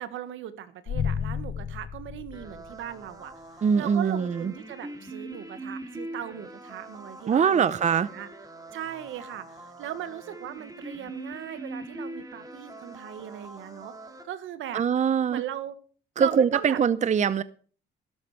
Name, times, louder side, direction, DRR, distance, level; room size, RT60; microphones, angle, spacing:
voice 1, 0.0-8.3 8.7-13.9 14.2-14.8 15.3-15.7 16.2-16.8, right 11 dB, 80° right, 12 dB, 1.6 m, -38 dB
sound 1, 0.9-3.1, left 7 dB, 60° left, 1.0 m, -32 dB
sound 2, 2.3-14.2, right 2 dB, 20° right, 2.8 m, -42 dB
voice 2, 3.6-4.5 7.3-8.1 14.7-15.4 16.2-17.4, right 7 dB, 35° right, 16 dB, 0.6 m, -23 dB
12.5 x 12.5 x 4.9 m, 0.43 s
cardioid pair, 90°, 20 cm